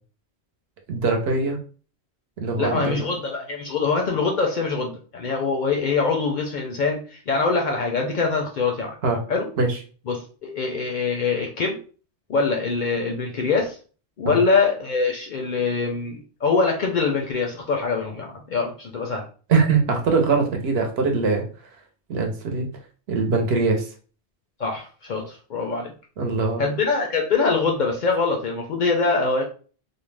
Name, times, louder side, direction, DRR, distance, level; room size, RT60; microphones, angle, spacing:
voice 1, 0.9-1.6 2.4-3.0 9.0-9.2 9.6-9.8 14.2-14.4 19.5-21.5 22.1-22.7 23.1-23.9 26.2-26.6, right 4 dB, 70° right, 3 dB, 0.9 m, -22 dB
voice 2, 2.6-8.9 9.3-9.5 10.1-11.8 12.3-13.8 14.2-19.2 24.6-25.9 26.6-29.4, left 4 dB, 60° left, 1 dB, 0.5 m, -24 dB
2.5 x 2.1 x 3.2 m, 0.39 s
omnidirectional pair, 1.1 m